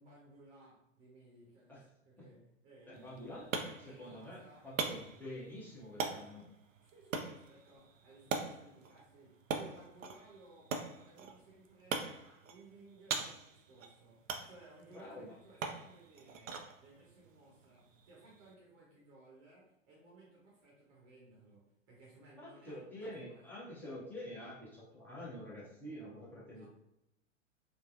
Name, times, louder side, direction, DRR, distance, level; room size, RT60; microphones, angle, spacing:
voice 1, 0.0-3.2 3.8-4.7 6.8-23.5 26.5-26.7, right 2 dB, 30° right, -5 dB, 0.9 m, -60 dB
voice 2, 2.9-3.5 3.8-6.5 14.9-15.3 22.4-26.7, left 1 dB, 5° left, -7 dB, 0.8 m, -47 dB
sound 1, 2.9-18.5, right 5 dB, 75° right, 0.5 m, -43 dB
3.3 x 2.2 x 2.5 m, 0.87 s
figure-of-eight pair, 105°, 39 cm